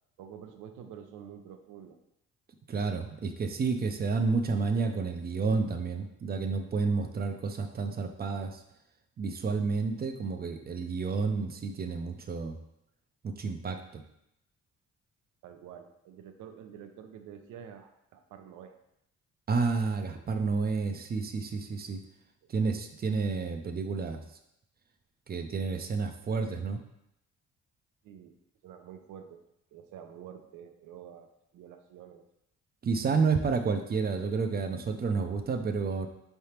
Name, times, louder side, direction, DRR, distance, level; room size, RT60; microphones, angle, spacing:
voice 1, 0.2-2.0 15.4-18.8 20.1-20.2 22.4-22.5 28.0-28.4 28.6-32.3, right 8 dB, 85° right, 7 dB, 0.6 m, -48 dB
voice 2, 2.7-8.6 9.2-12.6 13.2-14.0 19.5-22.0 22.5-24.2 25.3-26.8 32.8-36.1, right 4 dB, 30° right, 7 dB, 0.5 m, -30 dB
4.7 x 3.4 x 2.9 m, 0.80 s
cardioid pair, 90°, 30 cm